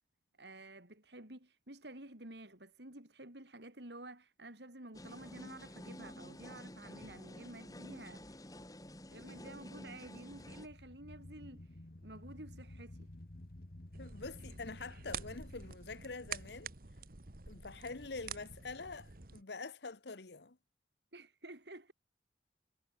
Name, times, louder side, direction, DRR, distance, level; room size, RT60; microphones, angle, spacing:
voice 1, 0.4-8.6 9.1-13.1 21.1-21.9, right 1 dB, 70° right, 5.0 m, -52 dB
sound 1, 4.9-10.7, left 1 dB, 20° left, 3.2 m, -50 dB
sound 2, 9.0-15.7, left 1 dB, 50° left, 1.5 m, -53 dB
sound 3, 13.9-19.4, right 6 dB, 50° right, 1.7 m, -48 dB
voice 2, 14.0-16.7 17.5-20.6, left 3 dB, 70° left, 1.2 m, -46 dB
head